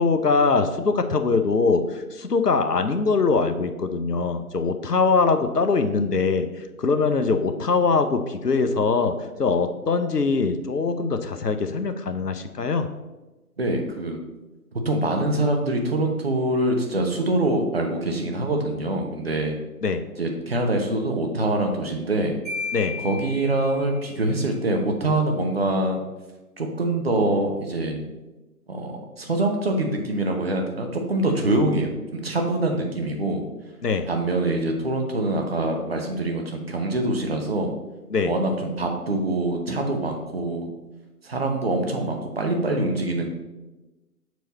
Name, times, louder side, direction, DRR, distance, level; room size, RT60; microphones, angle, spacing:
voice 1, 0.0-6.5 6.8-9.1 9.4-12.9 19.8-20.0 22.7-22.9 33.8-34.1 38.1-38.3, left 4 dB, 80° left, 8 dB, 0.8 m, -22 dB
voice 2, 13.6-14.2 14.8-19.5 20.2-22.4 23.0-26.0 26.6-28.0 28.7-33.4 34.1-37.7 38.2-40.7 41.2-43.3, right 2 dB, 40° right, 3 dB, 0.9 m, -24 dB
Marimba xylophone, 22.4-24.2, left 4 dB, 25° right, 2.4 m, -34 dB
6.7 x 4.7 x 4.0 m, 1.1 s
figure-of-eight pair, 150°, 47 cm